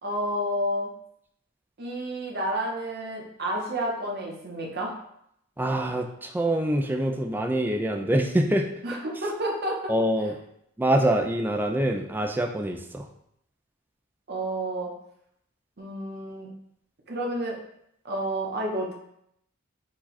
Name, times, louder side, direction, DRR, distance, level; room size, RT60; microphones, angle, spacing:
voice 1, 0.0-0.9 1.8-4.9 8.8-9.9 14.3-14.9 15.8-16.5 17.1-17.6 18.0-18.9, right 1 dB, 50° right, -1 dB, 0.9 m, -30 dB
voice 2, 5.6-8.7 9.9-10.3 10.8-13.1, right 1 dB, 10° right, 2 dB, 0.3 m, -25 dB
4.7 x 2.4 x 4.0 m, 0.74 s
head